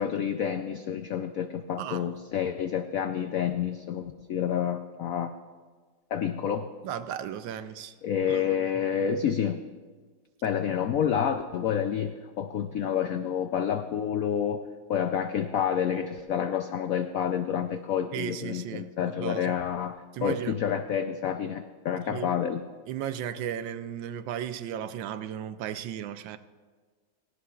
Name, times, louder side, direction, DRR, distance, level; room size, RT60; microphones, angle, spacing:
voice 1, 0.0-5.4 6.1-6.7 8.0-9.6 10.4-14.6 14.9-22.7, left 8 dB, 85° left, 8 dB, 0.7 m, -29 dB
voice 2, 1.8-2.1 6.8-7.9 8.3-8.6 9.0-9.1 18.1-19.5 20.1-20.6 22.1-22.3 22.9-26.4, right 9 dB, 80° right, 11 dB, 1.3 m, -35 dB
17.5 x 16.5 x 2.4 m, 1.5 s
omnidirectional pair, 2.1 m